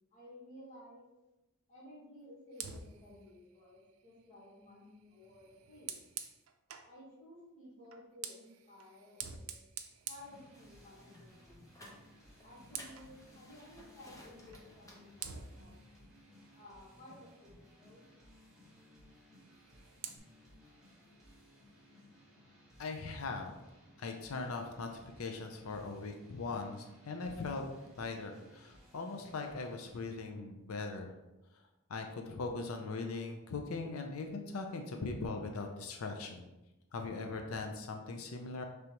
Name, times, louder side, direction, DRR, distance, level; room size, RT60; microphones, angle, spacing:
voice 1, 0.1-1.1 1.7-5.9 6.8-9.6 10.1-11.6 12.4-15.7 16.5-18.0, left 1 dB, 35° left, -6 dB, 1.4 m, -55 dB
Fire, 2.5-7.0 7.8-11.1 11.5-11.7 12.1-13.1 14.5-14.7 15.2-17.5 19.4-20.2, right 8 dB, 80° right, 0.4 m, -49 dB
sound 1, 10.2-30.0, equal, ahead, 1.1 m, -60 dB
sound 2, 10.5-15.7, left 1 dB, 15° left, 0.8 m, -58 dB
voice 2, 22.8-23.5 24.0-27.6 28.0-31.1 31.9-36.5 36.9-38.6, left 3 dB, 80° left, 4 dB, 0.5 m, -40 dB
5.1 x 3.4 x 2.9 m, 1.0 s
head